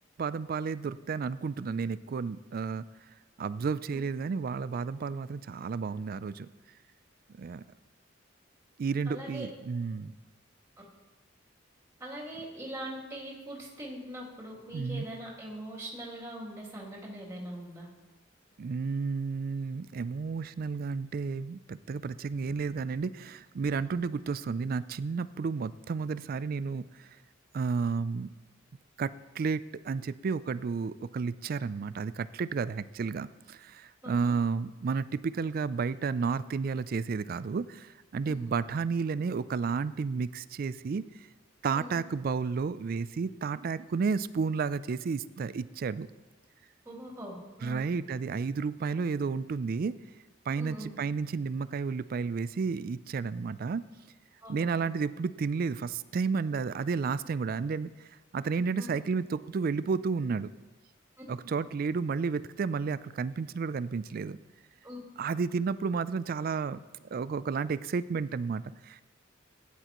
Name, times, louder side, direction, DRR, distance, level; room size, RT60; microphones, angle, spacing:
voice 1, 0.2-2.8 3.4-6.5 7.3-7.6 8.8-10.1 14.7-15.1 18.6-27.1 27.5-28.3 29.0-41.3 41.6-46.1 47.6-49.9 50.5-53.8 54.5-60.5 61.3-64.4 65.2-66.8 67.1-69.0, right 5 dB, 45° right, 16 dB, 0.3 m, -32 dB
voice 2, 9.0-9.5 12.0-17.9 34.0-34.3 38.2-38.4 41.7-42.0 46.8-47.8 50.6-50.9 54.4-54.7 58.8-58.9 64.8-65.0, right 1 dB, 15° right, -6 dB, 2.6 m, -42 dB
16.5 x 10.5 x 3.0 m, 1.2 s
head